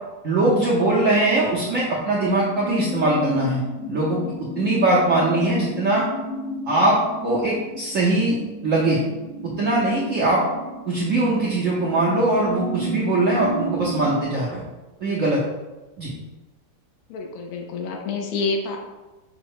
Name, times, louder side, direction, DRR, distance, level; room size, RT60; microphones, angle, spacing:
voice 1, 0.2-3.6 3.9-4.2 4.6-6.0 6.7-7.0 7.2-8.4 8.6-9.0 9.4-10.4 10.9-14.6 15.0-15.4 16.0-16.1, right 2 dB, 70° right, -5 dB, 0.7 m, -21 dB
sound 1, 1.0-14.2, equal, 65° left, 1.2 m, -33 dB
voice 2, 17.1-18.8, left 4 dB, 90° left, 2 dB, 1.5 m, -28 dB
5.2 x 2.0 x 4.6 m, 1.1 s
omnidirectional pair, 2.2 m